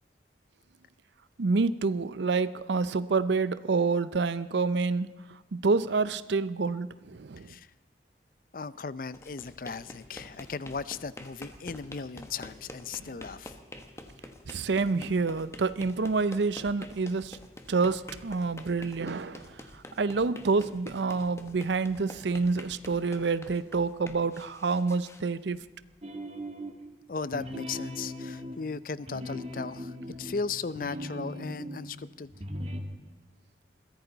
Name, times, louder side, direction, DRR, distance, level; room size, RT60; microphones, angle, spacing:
voice 1, 1.4-7.5 13.0-13.1 14.5-17.4 17.7-25.6, right 4 dB, 75° right, 15 dB, 0.6 m, -28 dB
voice 2, 8.5-13.5 27.1-32.3, left 4 dB, 50° left, 17 dB, 0.5 m, -37 dB
sound 1, 9.1-26.0, left 1 dB, 15° left, 1.1 m, -48 dB
sound 2, 26.0-26.9 27.3-31.9 32.3-32.8, equal, 35° right, 1.6 m, -39 dB
22.0 x 15.5 x 4.0 m, 1.2 s
head